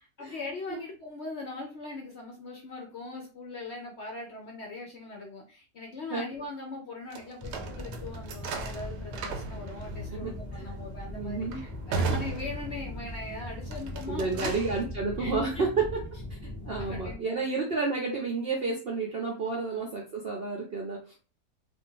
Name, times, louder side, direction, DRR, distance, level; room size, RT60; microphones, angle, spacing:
voice 1, 0.2-14.5 15.2-15.4 16.6-17.5 19.5-19.8, left 3 dB, 60° left, 0 dB, 0.7 m, -40 dB
sound 1, 7.1-13.2 13.6-14.8, right 4 dB, 85° right, 1.2 m, -36 dB
sound 2, 7.4-17.1, left 1 dB, 10° left, 1.1 m, -40 dB
voice 2, 10.1-10.7 11.1-11.6 14.1-16.0 16.7-21.2, right 4 dB, 60° right, 0 dB, 0.6 m, -31 dB
2.6 x 2.5 x 3.7 m, 0.35 s
omnidirectional pair, 1.7 m